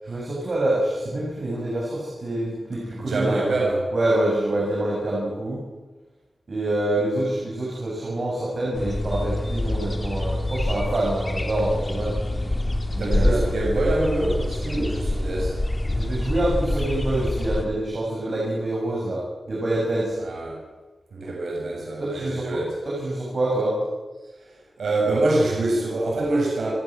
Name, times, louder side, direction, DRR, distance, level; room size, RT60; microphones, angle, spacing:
voice 1, 0.0-3.4 3.9-5.6 6.5-12.1 12.9-13.4 15.9-19.2 19.5-20.2 22.0-23.8, right 1 dB, 50° right, -4 dB, 7.9 m, -26 dB
voice 2, 3.0-3.8 13.0-15.6 20.2-20.6 21.1-22.7 24.4-26.7, right 2 dB, 85° right, -2 dB, 7.5 m, -25 dB
sound 1, 8.7-17.7, left 1 dB, 25° left, 3.2 m, -26 dB
29.5 x 14.5 x 7.7 m, 1.2 s
wide cardioid pair, 100°, 0 cm